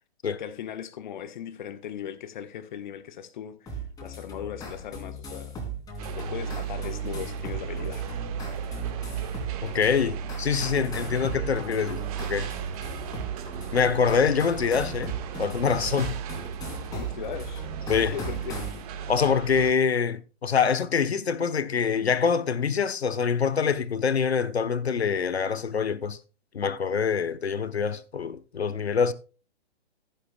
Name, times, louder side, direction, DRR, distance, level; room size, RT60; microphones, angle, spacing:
voice 1, 0.4-5.6 6.1-8.2 16.9-18.7, left 9 dB, 45° left, 1.3 m, -38 dB
sound 1, 3.7-18.8, right 3 dB, 10° left, 3.1 m, -38 dB
sound 2, 6.0-19.7, right 6 dB, 35° right, 1.6 m, -35 dB
voice 2, 9.6-12.0 12.3-12.5 13.7-15.1 15.4-16.1 17.9-18.1 19.1-26.2 26.5-29.1, left 6 dB, 75° left, 1.1 m, -25 dB
14.5 x 10.5 x 2.3 m
figure-of-eight pair, 125°, 33 cm